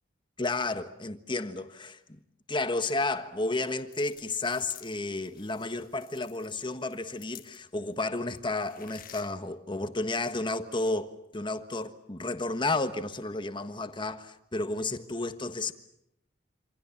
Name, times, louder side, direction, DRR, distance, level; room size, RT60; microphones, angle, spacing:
voice 1, 0.4-2.2 2.5-15.7, left 2 dB, 25° left, 1.4 m, -32 dB
sound 1, 3.6-7.8 8.2-9.3, left 11 dB, 50° left, 1.4 m, -51 dB
27.5 x 27.0 x 7.3 m
head